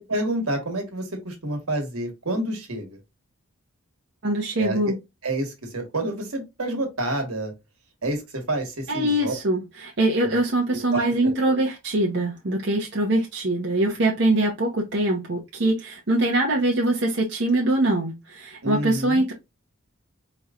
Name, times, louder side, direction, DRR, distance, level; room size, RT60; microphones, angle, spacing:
voice 1, 0.0-3.0 4.6-4.9 5.2-7.5 8.0-9.3 10.2-10.4 10.7-11.6 18.6-19.2, right 1 dB, 80° right, 1.4 m, -29 dB
voice 2, 4.2-5.0 8.9-19.3, right 1 dB, 50° right, 0.8 m, -23 dB
4.3 x 3.0 x 2.4 m
head